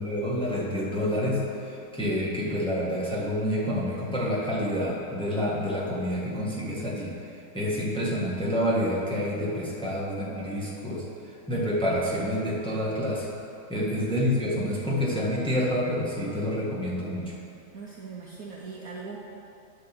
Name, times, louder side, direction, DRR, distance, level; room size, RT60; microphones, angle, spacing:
voice 1, 0.0-7.1 7.5-11.0 11.5-13.3 13.7-17.2, equal, 5° left, -6 dB, 1.3 m, -28 dB
voice 2, 17.7-19.3, right 4 dB, 60° right, -3 dB, 1.1 m, -40 dB
10.0 x 4.2 x 7.4 m, 2.8 s
omnidirectional pair, 2.0 m